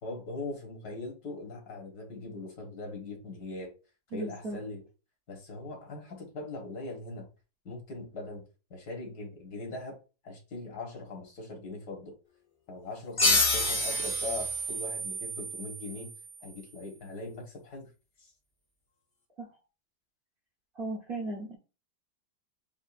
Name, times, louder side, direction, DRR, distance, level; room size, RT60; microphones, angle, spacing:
voice 1, 0.0-3.7 4.1-4.8 5.3-7.3 7.7-8.4 8.7-10.0 10.2-12.1 12.7-16.1 16.4-17.9 18.2-18.3, left 2 dB, 60° left, 1.9 m, -40 dB
voice 2, 4.1-4.6 19.4-19.5 20.7-21.6, right 2 dB, 40° right, 0.9 m, -36 dB
sound 1, 13.2-16.4, left 2 dB, 35° left, 0.8 m, -29 dB
7.2 x 2.5 x 2.5 m
omnidirectional pair, 1.9 m